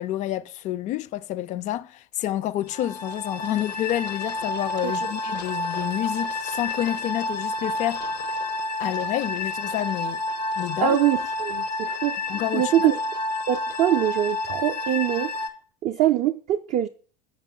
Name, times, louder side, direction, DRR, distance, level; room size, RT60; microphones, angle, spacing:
voice 1, 0.0-8.0 8.8-10.2 10.6-11.0 12.3-12.9, left 13 dB, 35° left, 0.4 m, -29 dB
sound 1, 2.7-15.5, left 2 dB, 85° left, 0.8 m, -30 dB
voice 2, 10.8-12.2 12.5-13.0 13.5-15.3 15.8-16.9, right 12 dB, 35° right, 0.4 m, -23 dB
7.2 x 5.1 x 3.7 m
figure-of-eight pair, 80°, 21 cm